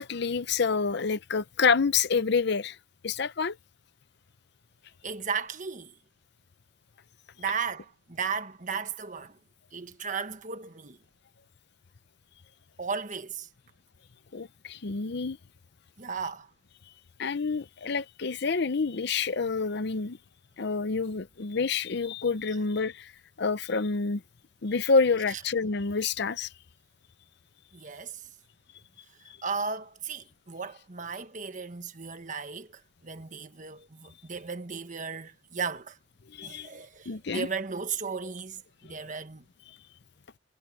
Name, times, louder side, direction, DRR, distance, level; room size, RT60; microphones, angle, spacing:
voice 1, 0.0-2.8 3.0-3.6 14.3-15.4 17.2-20.2 20.6-23.1 23.4-24.2 24.6-26.5 36.3-36.7 37.1-37.5, left 4 dB, 60° left, 0.7 m, -28 dB
voice 2, 5.0-5.9 7.4-9.4 9.7-11.0 12.8-13.5 16.0-16.5 27.7-28.2 29.4-36.0 36.4-39.4, right 5 dB, 40° right, 1.4 m, -35 dB
head